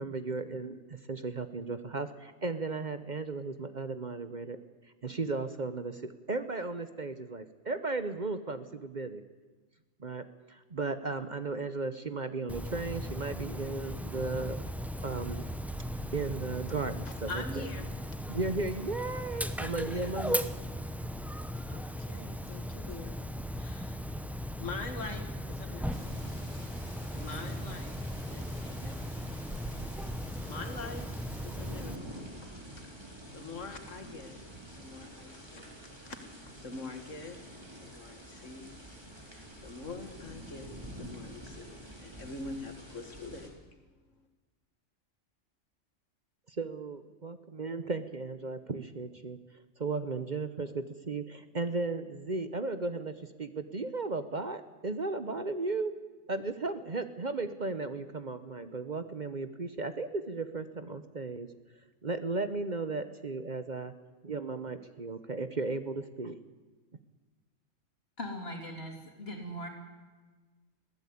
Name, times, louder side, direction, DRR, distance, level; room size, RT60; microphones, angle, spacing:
voice 1, 0.0-4.6 5.0-9.2 10.0-14.6 15.0-15.5 16.1-17.3 17.6-17.7 18.3-20.4 46.5-49.4 49.8-53.1 53.4-55.9 56.3-61.5 62.0-63.9 64.2-66.4, right 3 dB, 40° right, 10 dB, 1.0 m, -35 dB
Dog, 12.5-31.9, equal, ahead, 0.8 m, -37 dB
voice 2, 17.0-17.9 19.9-20.1 21.7-23.2 23.6-24.0 24.6-26.7 27.2-28.0 28.3-29.3 30.0-31.1 31.4-32.2 33.0-34.4 34.8-35.8 36.0-37.4 37.8-38.7 39.3-43.9, left 3 dB, 80° left, 6 dB, 2.2 m, -44 dB
sound 1, 25.9-43.5, right 1 dB, 20° right, 3.6 m, -48 dB
voice 3, 68.2-69.7, equal, 55° left, 2 dB, 3.7 m, -40 dB
22.0 x 16.5 x 8.5 m, 1.3 s
omnidirectional pair, 1.3 m